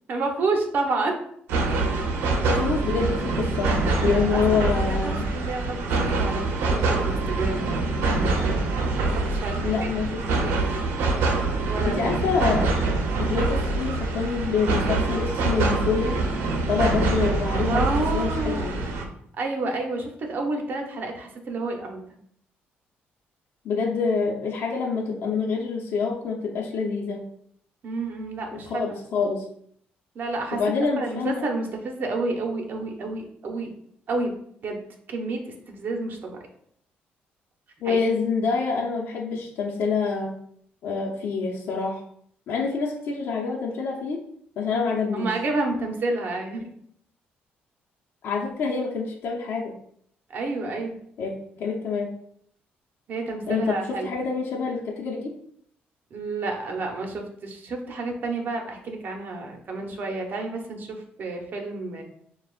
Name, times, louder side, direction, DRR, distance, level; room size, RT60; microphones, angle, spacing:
voice 1, 0.1-1.1 3.8-8.6 9.0-9.6 11.7-12.0 17.7-18.8 19.4-22.0 27.8-29.0 30.1-30.6 31.0-33.7 34.1-34.4 34.6-34.8 35.1-35.4 35.7-36.4 37.8-38.0 45.1-46.7 50.3-51.0 53.1-54.1 56.1-62.0, right 3 dB, 50° right, 2 dB, 0.9 m, -30 dB
sound 1, 1.5-19.0, right 3 dB, 90° right, 0.7 m, -25 dB
voice 2, 2.5-5.3 9.6-10.5 11.8-12.7 13.2-16.1 16.7-18.8 23.6-27.2 28.5-29.4 30.5-31.4 37.8-40.3 40.8-42.0 42.5-44.2 44.6-45.3 48.2-49.7 51.2-52.1 53.5-55.3, left 5 dB, 65° left, -2 dB, 0.8 m, -26 dB
6.7 x 2.4 x 2.5 m, 0.68 s
cardioid pair, 110°, 4 cm